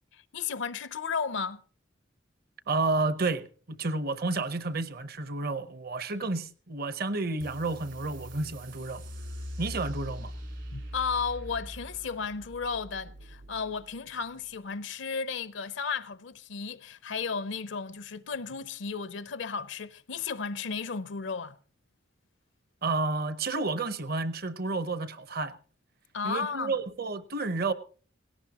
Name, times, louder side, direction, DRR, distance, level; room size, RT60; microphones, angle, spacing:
voice 1, 0.1-1.6 10.7-21.6 26.1-26.8, left 5 dB, 75° left, 0.6 m, -34 dB
voice 2, 2.7-9.0 9.6-10.3 22.8-25.6 26.2-27.7, right 3 dB, 55° right, 0.9 m, -31 dB
sound 1, 7.4-14.5, equal, 75° right, 4.1 m, -42 dB
17.5 x 17.5 x 2.9 m
head